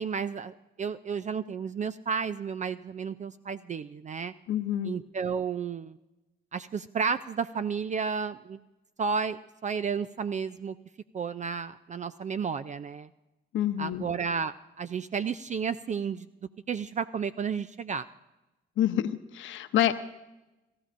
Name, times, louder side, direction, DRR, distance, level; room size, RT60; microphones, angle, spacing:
voice 1, 0.0-4.3 4.8-6.0 6.5-8.6 9.0-10.8 11.1-13.1 13.8-16.3 16.7-18.1, right 6 dB, 35° right, 14 dB, 0.4 m, -32 dB
voice 2, 4.5-5.0 13.5-14.1 18.8-19.9, left 11 dB, 75° left, 10 dB, 0.8 m, -27 dB
24.0 x 14.0 x 2.5 m, 1.0 s
cardioid pair, 90°, 20 cm